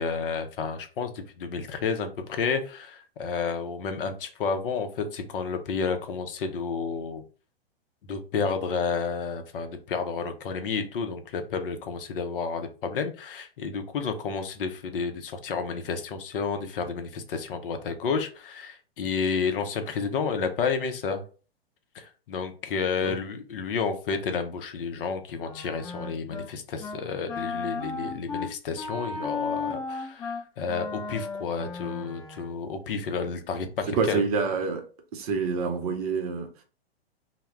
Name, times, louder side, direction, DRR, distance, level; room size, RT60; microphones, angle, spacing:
voice 1, 0.0-7.2 8.1-21.2 21.9-34.2, left 5 dB, 60° left, 7 dB, 0.5 m, -31 dB
Wind instrument woodwind instrument, 25.3-26.5 26.8-27.0 27.3-32.6, left 4 dB, 15° left, 0.5 m, -35 dB
voice 2, 33.9-34.8 35.1-36.6, right 5 dB, 40° right, 4 dB, 0.5 m, -27 dB
2.1 x 2.0 x 3.3 m, 0.37 s
figure-of-eight pair, 110°, 31 cm